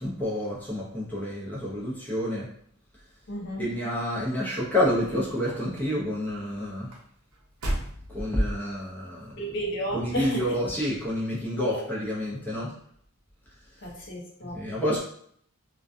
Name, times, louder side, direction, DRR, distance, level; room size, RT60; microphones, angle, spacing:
voice 1, 0.0-2.5 3.6-6.9 8.1-9.3 9.9-12.7 14.4-15.0, left 1 dB, 10° left, -6 dB, 0.6 m, -28 dB
voice 2, 3.3-3.7 9.4-10.4 11.6-11.8 13.8-14.6, right 1 dB, 55° left, -3 dB, 0.7 m, -32 dB
sound 1, 4.1-8.9 9.6-10.0 10.4-10.5, right 1 dB, 80° right, 0.7 m, -37 dB
2.3 x 2.2 x 2.5 m, 0.63 s
head